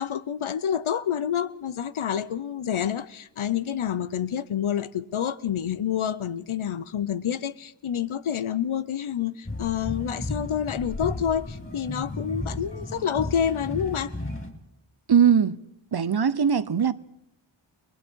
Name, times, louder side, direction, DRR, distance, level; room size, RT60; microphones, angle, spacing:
voice 1, 0.0-14.1, left 8 dB, 85° left, 0.9 m, -28 dB
sound 1, 9.4-14.5, left 2 dB, 25° left, 3.7 m, -34 dB
voice 2, 15.1-15.6 15.9-16.9, right 7 dB, 55° right, 0.9 m, -20 dB
30.0 x 20.0 x 4.6 m
wide cardioid pair, 70°, 47 cm